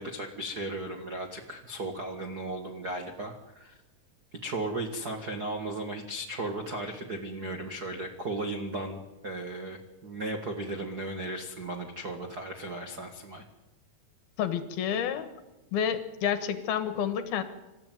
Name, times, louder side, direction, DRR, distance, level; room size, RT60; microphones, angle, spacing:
voice 1, 0.0-3.8 4.3-13.4, right 2 dB, 50° right, 4 dB, 1.1 m, -36 dB
voice 2, 14.4-15.3 15.7-17.4, left 8 dB, 70° left, 10 dB, 3.2 m, -29 dB
27.0 x 14.0 x 9.2 m, 1.0 s
omnidirectional pair, 4.7 m